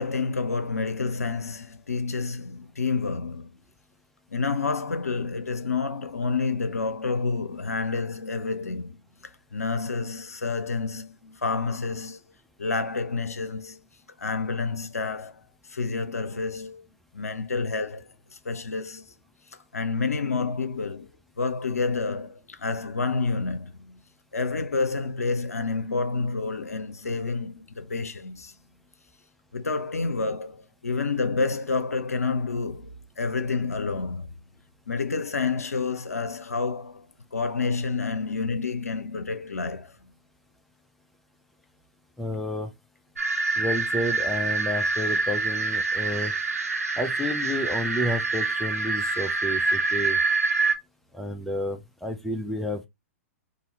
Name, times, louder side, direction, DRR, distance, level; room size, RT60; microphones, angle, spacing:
voice 1, 0.0-3.5 4.3-9.0 9.5-12.2 12.6-13.8 14.2-15.4 15.7-16.9 17.1-18.1 18.4-19.0 19.7-21.1 21.4-24.0 24.3-28.5 29.5-34.3 34.9-37.1 37.3-40.0, left 4 dB, 85° left, 0.6 m, -29 dB
voice 2, 42.2-42.7 43.6-46.3 47.0-50.2 51.1-52.9, left 1 dB, ahead, 0.6 m, -31 dB
sound 1, 43.2-50.7, right 3 dB, 85° right, 0.8 m, -26 dB
2.8 x 2.7 x 4.0 m
figure-of-eight pair, 110°, 8 cm